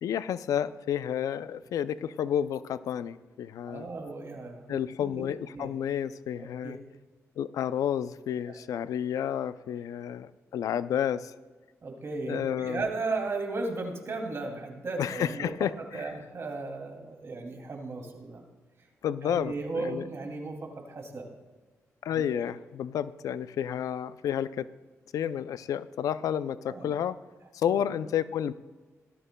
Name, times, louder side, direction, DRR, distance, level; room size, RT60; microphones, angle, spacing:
voice 1, 0.0-3.9 4.7-6.8 7.4-11.3 12.3-12.8 15.0-16.1 19.0-20.1 22.0-24.7 25.1-27.2 27.5-28.5, left 9 dB, 85° left, 15 dB, 0.4 m, -31 dB
voice 2, 3.7-5.2 5.5-5.7 6.4-6.8 8.5-8.6 11.8-15.5 15.8-18.4 19.2-21.3 22.2-22.4 26.7-26.9 27.7-27.8, right 3 dB, 50° right, 2 dB, 2.6 m, -36 dB
18.0 x 13.5 x 2.2 m, 1.3 s
cardioid pair, 75°, 6 cm